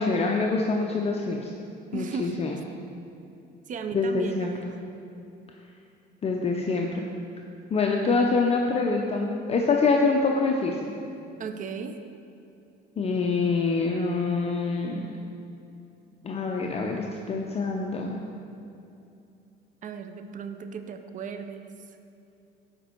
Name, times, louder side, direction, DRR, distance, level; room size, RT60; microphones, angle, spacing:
voice 1, 0.0-1.5 1.9-2.6 3.9-4.5 6.2-7.1 7.7-10.9 13.0-15.0 16.2-18.2, left 4 dB, 35° left, 1 dB, 0.6 m, -25 dB
voice 2, 1.9-2.4 3.7-4.8 11.4-12.0 19.8-21.6, right 5 dB, 45° right, 8 dB, 0.5 m, -35 dB
7.9 x 5.2 x 4.4 m, 2.7 s
cardioid pair, 105°, 19 cm